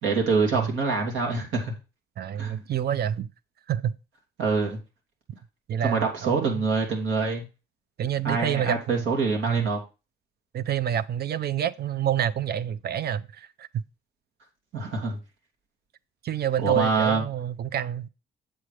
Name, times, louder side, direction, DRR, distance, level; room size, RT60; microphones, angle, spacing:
voice 1, 0.0-1.7 2.4-2.6 4.4-4.8 5.8-7.5 8.2-9.8 14.7-15.2 16.6-17.2, right 4 dB, 80° right, 2.8 m, -25 dB
voice 2, 2.2-3.3 3.7-4.0 5.7-6.6 8.0-9.1 9.5-9.7 10.5-13.8 16.2-18.1, right 9 dB, 55° right, 0.6 m, -28 dB
7.9 x 7.6 x 3.3 m
cardioid pair, 90°, 20 cm